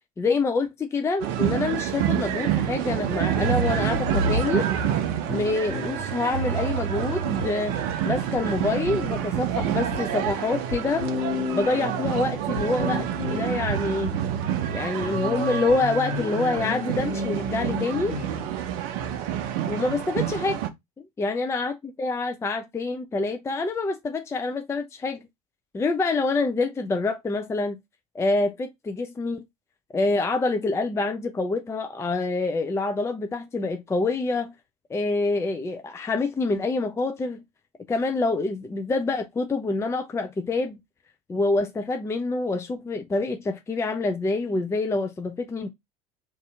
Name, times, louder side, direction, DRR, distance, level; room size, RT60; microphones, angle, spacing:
voice 1, 0.2-4.7 5.3-7.8 8.0-11.1 11.5-14.1 14.7-18.1 19.7-20.6 21.0-21.7 22.0-25.2 25.7-27.8 28.1-29.4 29.9-34.5 34.9-37.4 37.9-40.8 41.3-45.7, left 3 dB, 15° left, 0.4 m, -26 dB
sound 1, 1.2-20.7, right 10 dB, 55° right, 0.6 m, -28 dB
sound 2, 3.4-18.6, equal, 70° left, 1.5 m, -32 dB
2.7 x 2.5 x 3.4 m
figure-of-eight pair, 65°, 19 cm